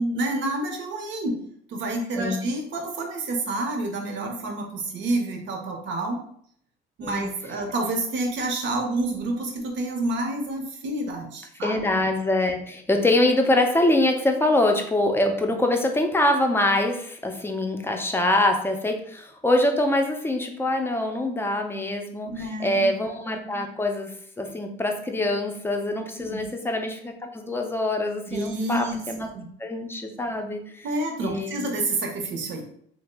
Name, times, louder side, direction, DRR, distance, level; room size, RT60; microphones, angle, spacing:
voice 1, 0.0-1.4 1.7-6.2 7.0-11.7 22.2-22.9 26.2-26.5 28.3-29.0 29.3-29.5 30.8-32.6, right 2 dB, 65° right, 3 dB, 0.7 m, -28 dB
voice 2, 11.6-22.3 22.6-29.3 29.6-30.9 31.2-31.6, left 1 dB, 10° left, 4 dB, 0.5 m, -24 dB
2.8 x 2.0 x 3.3 m, 0.65 s
cardioid pair, 95°, 20 cm